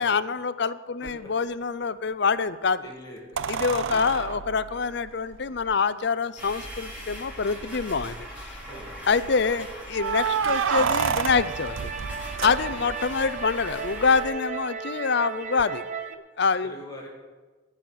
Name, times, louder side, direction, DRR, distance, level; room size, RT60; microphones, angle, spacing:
voice 1, 0.0-2.9 3.5-8.5 9.1-11.9 12.4-15.8 16.1-16.7, left 5 dB, 60° left, 14 dB, 0.6 m, -26 dB
sound 1, 1.1-1.2 3.4-5.7 6.7-6.8 7.1-7.2 7.7-8.2 9.9-13.1 15.6-15.7, right 7 dB, 80° right, 0.5 m, -29 dB
voice 2, 2.8-4.3 8.8-8.9 9.4-9.5 12.6-12.9 16.6-17.1, left 1 dB, 20° left, -2 dB, 2.0 m, -44 dB
sound 2, 6.4-14.2, equal, 5° right, 3.3 m, -40 dB
sound 3, 10.5-16.1, right 5 dB, 40° right, 0.8 m, -35 dB
14.5 x 6.4 x 9.3 m, 1.3 s
head